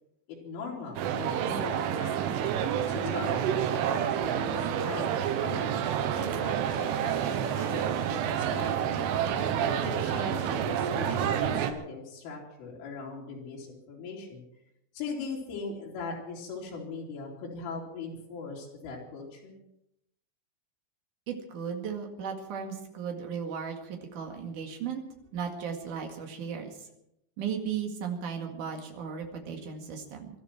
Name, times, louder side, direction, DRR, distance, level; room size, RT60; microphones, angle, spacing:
voice 1, 0.4-3.4 3.6-3.8 4.2-5.1 5.4-5.7 6.1-9.1 9.6-14.4 14.9-19.6, left 4 dB, 80° left, -3 dB, 6.0 m, -40 dB
sound 1, 1.0-11.7, right 9 dB, 85° right, 3.6 m, -29 dB
voice 2, 21.3-25.0 25.3-26.7 27.4-30.4, right 7 dB, 50° right, 2 dB, 2.9 m, -36 dB
24.5 x 13.0 x 4.5 m, 0.83 s
omnidirectional pair, 5.6 m